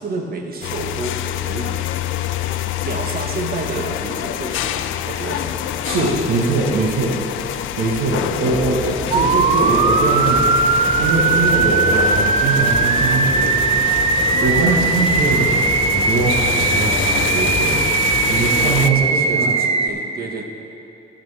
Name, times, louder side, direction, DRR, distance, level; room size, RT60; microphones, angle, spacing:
voice 1, 0.0-2.0 2.8-5.5 15.2-15.7 18.8-20.4, right 3 dB, 50° right, 4 dB, 1.2 m, -30 dB
sound 1, 0.6-18.9, left 12 dB, 80° left, 0.4 m, -26 dB
sound 2, 2.5-3.3 3.6-7.9 8.5-18.8, left 3 dB, 25° left, 0.8 m, -32 dB
voice 2, 5.8-7.2 7.8-10.6 11.0-15.6 15.8-19.6, right 3 dB, 85° right, -2 dB, 1.3 m, -22 dB
sound 3, 9.1-19.9, right 5 dB, 30° right, 0.5 m, -19 dB
14.0 x 8.9 x 3.4 m, 2.7 s
cardioid pair, 90°, 20 cm